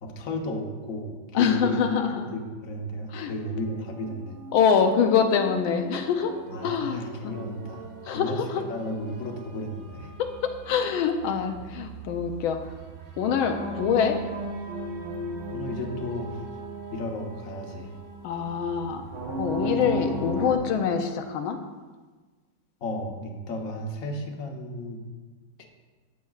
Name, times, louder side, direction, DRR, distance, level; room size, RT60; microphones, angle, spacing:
voice 1, 0.0-1.8 2.3-4.4 6.5-7.9 8.1-10.1 15.5-16.4 16.9-17.9 22.8-25.0 25.6-25.7, left 1 dB, 50° left, 1 dB, 1.3 m, -33 dB
voice 2, 1.3-2.3 3.1-3.3 4.5-6.4 6.6-7.3 8.0-8.6 10.2-12.7 13.2-14.2 18.2-19.0 19.4-21.6, left 7 dB, 90° left, 6 dB, 1.5 m, -25 dB
sound 1, 4.0-20.6, right 1 dB, 80° right, 2.0 m, -37 dB
13.5 x 7.2 x 2.4 m, 1.3 s
omnidirectional pair, 2.2 m